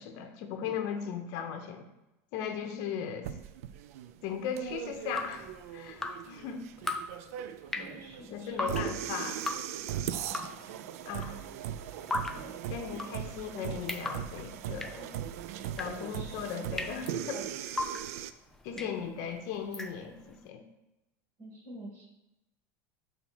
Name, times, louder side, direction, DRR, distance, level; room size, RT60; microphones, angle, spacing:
voice 1, 0.0-1.9 2.3-3.3 4.2-6.6 8.3-9.4 11.0-11.4 12.7-15.1 15.8-17.8 18.6-20.6, left 7 dB, 45° left, 5 dB, 0.9 m, -37 dB
sound 1, 3.2-18.3, right 10 dB, 70° right, 0.4 m, -39 dB
Drip, 4.9-20.4, left 2 dB, 5° left, 0.3 m, -40 dB
voice 2, 7.7-8.6 10.3-10.6 12.3-12.6 15.8-16.5 18.7-18.9 21.4-22.1, right 1 dB, 35° right, -1 dB, 1.9 m, -47 dB
6.0 x 3.6 x 6.1 m, 0.93 s
supercardioid pair, 180°, 8 cm